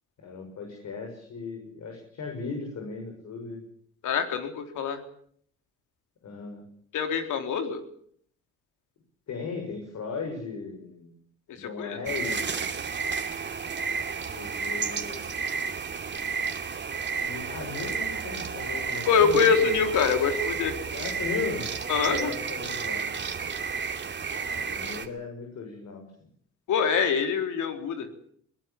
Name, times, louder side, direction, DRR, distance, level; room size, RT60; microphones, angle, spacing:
voice 1, 0.2-3.6 6.2-6.6 9.3-11.1 11.5-12.6 14.3-15.3 17.2-19.8 20.0-20.1 20.9-21.7 22.0-23.0 24.5-26.1, left 5 dB, 65° left, 3 dB, 6.7 m, -37 dB
voice 2, 4.0-5.0 6.9-7.8 11.5-12.0 19.1-20.8 21.9-22.3 26.7-28.1, left 6 dB, 80° left, 6 dB, 3.9 m, -25 dB
sound 1, 12.1-25.1, right 5 dB, 35° right, 2.6 m, -32 dB
22.0 x 18.0 x 8.6 m, 0.63 s
cardioid pair, 90°, 30 cm